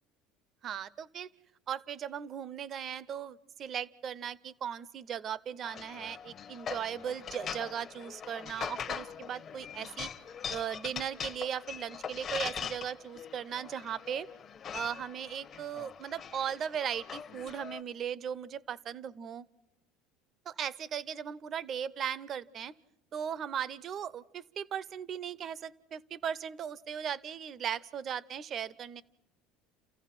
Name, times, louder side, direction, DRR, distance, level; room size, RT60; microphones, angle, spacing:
voice 1, 0.6-1.3 1.7-10.1 10.5-14.3 14.7-19.4 20.5-22.7 23.1-29.0, right 8 dB, 35° right, 19 dB, 0.7 m, -37 dB
sound 1, 5.6-17.8, left 7 dB, 35° left, 1.0 m, -42 dB
30.0 x 15.0 x 6.0 m, 0.88 s
cardioid pair, 135°, 0 cm